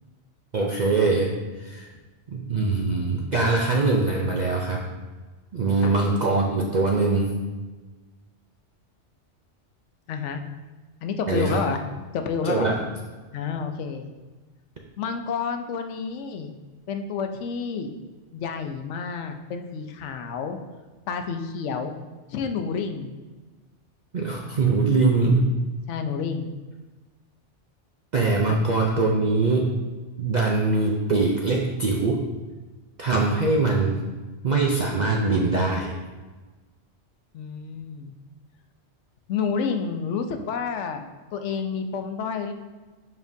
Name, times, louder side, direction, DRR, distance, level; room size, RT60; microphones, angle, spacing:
voice 1, 0.5-1.9 2.3-4.8 5.5-7.4 11.3-11.6 12.4-12.8 24.1-25.5 28.1-29.7 30.2-32.2 33.0-34.0 34.4-35.9, right 3 dB, 50° right, 0 dB, 0.6 m, -22 dB
voice 2, 10.1-10.4 11.0-11.8 12.1-12.7 13.3-14.1 15.0-16.5 16.9-17.9 18.3-20.6 21.1-22.0 22.3-23.2 25.9-26.5 37.3-38.1 39.3-41.0 41.3-42.5, left 6 dB, 80° left, 6 dB, 0.9 m, -29 dB
7.1 x 5.4 x 2.6 m, 1.3 s
omnidirectional pair, 1.2 m